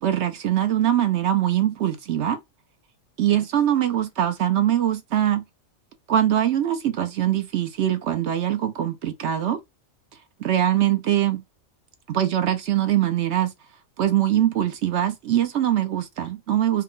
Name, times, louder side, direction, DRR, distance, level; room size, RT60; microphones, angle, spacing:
voice 1, 0.0-2.4 3.2-5.4 6.1-9.6 10.4-11.4 12.1-13.5 14.0-16.8, right 11 dB, 65° right, 0.8 m, -22 dB
4.4 x 2.0 x 3.7 m
omnidirectional pair, 1.3 m